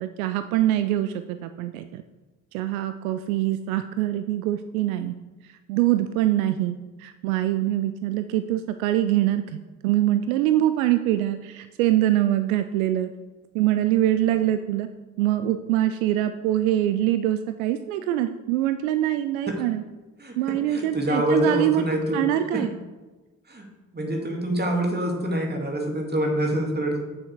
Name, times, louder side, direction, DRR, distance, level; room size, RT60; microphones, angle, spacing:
voice 1, 0.0-2.0 2.5-5.1 5.7-13.1 13.5-14.9 15.2-19.8 20.4-21.8 22.1-22.8, right 13 dB, 75° right, 10 dB, 0.5 m, -24 dB
voice 2, 20.7-22.2 22.5-22.6 23.5-23.7 23.9-27.0, equal, 25° right, 1 dB, 2.5 m, -25 dB
8.4 x 6.7 x 4.7 m, 1.2 s
figure-of-eight pair, 40°, 42 cm